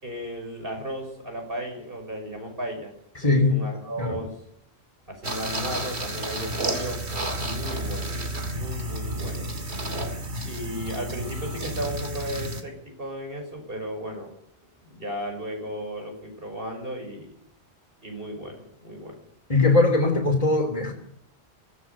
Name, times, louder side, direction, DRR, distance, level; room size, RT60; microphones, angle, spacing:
voice 1, 0.0-2.9 3.2-4.3 5.1-8.2 8.5-9.5 10.4-14.3 14.8-17.3 18.0-19.2, equal, 55° right, 3 dB, 6.1 m, -35 dB
voice 2, 3.1-3.6 4.0-4.2 19.5-20.9, left 3 dB, 35° left, -1 dB, 2.9 m, -20 dB
sound 1, 5.2-12.6, right 1 dB, 75° right, 2.7 m, -31 dB
23.5 x 17.0 x 7.0 m, 0.73 s
omnidirectional pair, 1.1 m